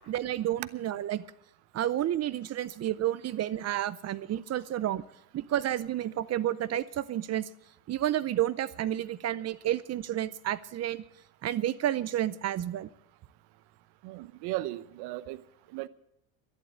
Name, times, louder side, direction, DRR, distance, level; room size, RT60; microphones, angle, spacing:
voice 1, 0.1-1.2 1.7-5.0 5.3-7.5 7.9-11.0 11.4-12.9, right 12 dB, 35° right, 0.6 m, -30 dB
voice 2, 14.0-15.4 15.7-15.9, right 17 dB, 65° right, 0.8 m, -36 dB
11.5 x 11.0 x 8.6 m
supercardioid pair, 105°, 43 cm